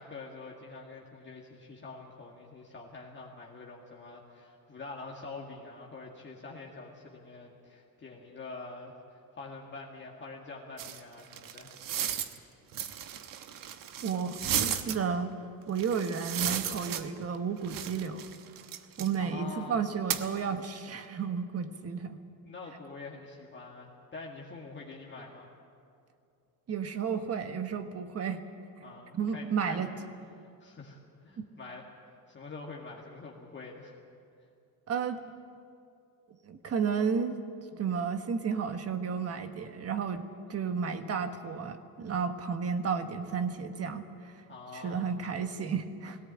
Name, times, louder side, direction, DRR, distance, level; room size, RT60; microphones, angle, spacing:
voice 1, 0.0-11.9 19.2-19.8 22.4-25.5 28.8-29.9 30.4-31.8 32.3-33.9 44.5-45.2, left 3 dB, 30° left, -2 dB, 2.0 m, -45 dB
sound 1, 10.8-12.4 12.7-15.0 15.8-17.4 17.6-19.1 20.1-20.3, right 9 dB, 65° right, 1.2 m, -34 dB
voice 2, 14.0-15.3 15.7-18.2 19.0-22.2 26.7-28.4 29.1-29.9 31.4-31.5 34.9-35.2 36.4-37.3 37.7-44.3 44.7-46.2, right 6 dB, 45° right, 8 dB, 1.4 m, -32 dB
18.5 x 17.5 x 9.0 m, 2.5 s
cardioid pair, 130°, 35 cm